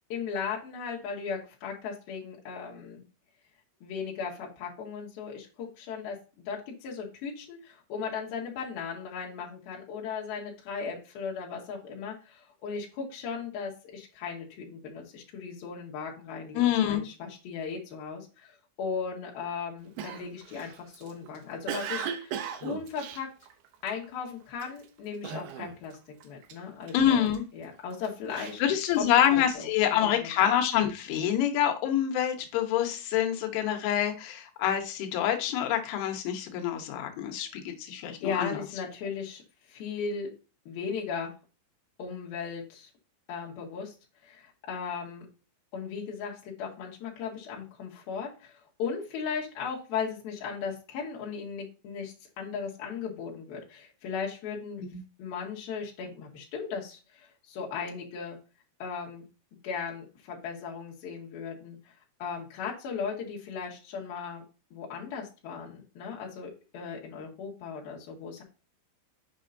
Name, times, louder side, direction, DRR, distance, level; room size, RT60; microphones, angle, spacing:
voice 1, 0.1-3.0 3.8-6.2 6.5-16.6 16.9-22.4 22.6-23.3 23.8-26.0 26.2-28.6 29.0-30.3 38.2-39.4 39.7-40.3 40.7-41.3 42.0-42.9 43.3-43.9 44.2-45.3 45.7-54.8 55.2-58.4 58.8-59.2 59.6-61.8 62.2-64.4 64.7-68.4, left 6 dB, 60° left, -3 dB, 3.3 m, -37 dB
voice 2, 16.5-17.0 26.9-27.4 28.6-38.6 54.8-55.0, left 10 dB, 90° left, 5 dB, 3.4 m, -26 dB
Cough, 20.0-24.1 24.5-24.8 25.2-26.0 26.2-27.4 27.9-29.4, right 8 dB, 80° right, 2.2 m, -38 dB
8.0 x 5.2 x 2.6 m, 0.32 s
omnidirectional pair, 5.2 m